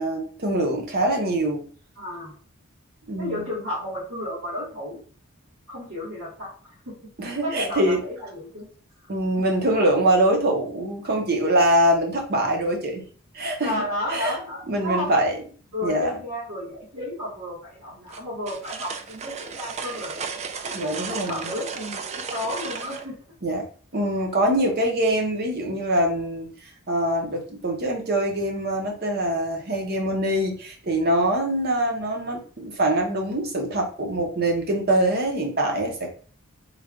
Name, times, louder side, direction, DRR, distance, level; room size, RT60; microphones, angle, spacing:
voice 1, 0.0-1.6 3.1-3.4 7.2-8.0 9.1-13.0 13.3-14.3 14.7-15.3 15.8-16.1 20.7-21.5 23.4-23.7 23.9-26.5 26.9-36.1, right 1 dB, 50° right, 2 dB, 0.9 m, -24 dB
voice 2, 2.0-2.4 3.2-5.0 5.7-6.9 7.4-8.7 9.0-9.1 9.4-9.5 9.7-10.0 13.6-15.1 15.7-23.1 24.0-24.3, left 1 dB, 80° right, -9 dB, 1.6 m, -33 dB
sound 1, 18.1-23.1, right 5 dB, 35° right, 0.3 m, -34 dB
3.3 x 2.4 x 3.6 m, 0.42 s
head